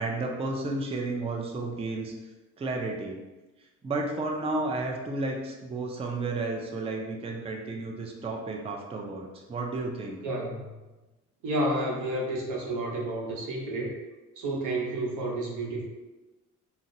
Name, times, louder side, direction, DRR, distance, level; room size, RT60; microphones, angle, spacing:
voice 1, 0.0-2.1 2.6-3.2 3.8-10.2, right 2 dB, 20° right, 1 dB, 0.4 m, -32 dB
voice 2, 10.2-10.7 11.4-13.9 14.4-15.8, right 1 dB, 85° right, -2 dB, 0.8 m, -30 dB
3.8 x 2.0 x 2.6 m, 1.1 s
cardioid pair, 90°, 30 cm